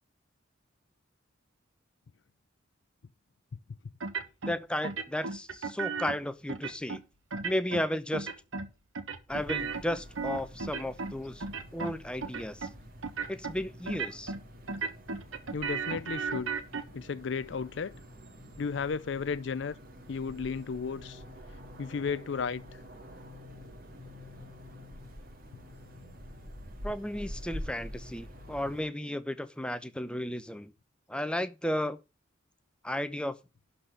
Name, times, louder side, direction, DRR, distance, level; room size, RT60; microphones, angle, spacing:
sound 1, 4.0-4.6 4.8-6.2 6.5-7.0 7.3-7.9 8.1-8.7 9.0-11.2 11.4-11.9 12.2-12.7 13.0-13.5 13.9-14.4 14.7-16.8, right 4 dB, 85° right, 1.3 m, -35 dB
voice 1, 4.4-7.0 7.4-8.3 9.3-11.4 11.7-12.7 13.3-14.3 26.8-30.7 31.1-32.0 32.8-33.4, left 1 dB, 5° left, 0.7 m, -34 dB
sound 2, 9.3-28.8, equal, 45° right, 2.2 m, -47 dB
voice 2, 15.5-16.5 16.9-18.0 18.6-19.7 20.1-21.2 21.8-22.6, left 5 dB, 60° left, 0.4 m, -34 dB
11.5 x 4.2 x 6.6 m
head